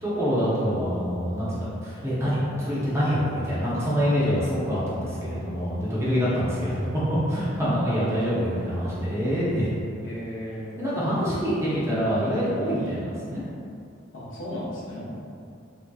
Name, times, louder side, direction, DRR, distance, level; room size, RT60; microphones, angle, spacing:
voice 1, 0.0-9.7 10.8-13.4, equal, 15° right, -10 dB, 0.7 m, -25 dB
voice 2, 6.3-6.8 10.0-10.8 12.8-13.0 14.1-15.2, equal, 65° left, -7 dB, 0.8 m, -36 dB
3.2 x 2.7 x 2.2 m, 2.4 s
head